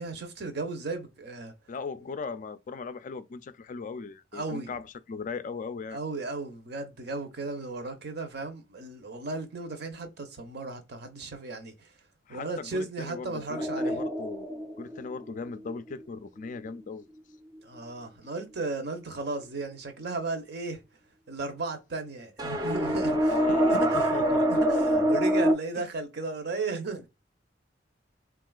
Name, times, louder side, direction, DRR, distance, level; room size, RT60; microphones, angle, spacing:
voice 1, 0.0-1.5 2.0-2.1 4.3-4.7 5.9-11.9 12.3-14.0 17.6-20.8 21.3-23.3 23.7-24.2 24.5-27.1, right 3 dB, 55° right, 0.8 m, -35 dB
voice 2, 1.7-6.0 12.3-14.5 14.8-17.1 23.3-24.7 25.8-25.9, left 4 dB, 40° left, 0.3 m, -37 dB
sound 1, 13.5-15.9 22.4-25.5, equal, 20° right, 0.5 m, -25 dB
3.7 x 2.4 x 2.3 m
head